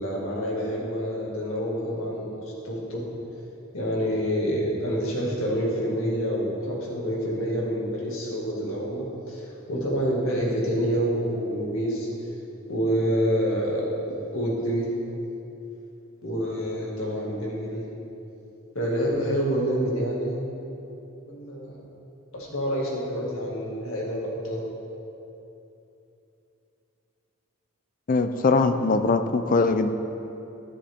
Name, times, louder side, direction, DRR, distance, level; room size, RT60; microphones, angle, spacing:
voice 1, 0.0-3.0 3.7-12.1 12.7-14.9 16.2-17.8 18.7-21.8 22.3-24.6, equal, 70° left, -4 dB, 2.0 m, -27 dB
voice 2, 28.1-29.9, left 3 dB, 40° left, 9 dB, 0.4 m, -21 dB
13.0 x 7.1 x 3.5 m, 2.9 s
head